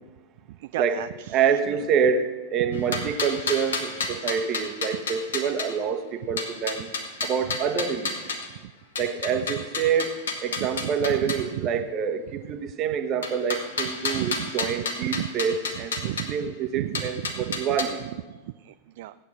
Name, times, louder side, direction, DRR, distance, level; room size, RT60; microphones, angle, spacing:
voice 1, 0.5-1.4 2.7-3.1 7.5-7.6 8.6-8.7 9.6-9.7 10.6-11.8 14.1-14.5 15.0-15.3 15.7-17.6 18.4-19.1, right 15 dB, 50° right, 13 dB, 0.3 m, -34 dB
voice 2, 1.3-6.9 7.2-8.2 9.0-18.0, right 7 dB, 35° right, 8 dB, 1.2 m, -27 dB
sound 1, 2.7-5.7 6.4-8.5 9.0-11.4 13.2-16.3 16.9-17.8, left 4 dB, 65° left, 1.9 m, -31 dB
15.5 x 9.5 x 6.7 m, 1.2 s
figure-of-eight pair, 90°, 0 cm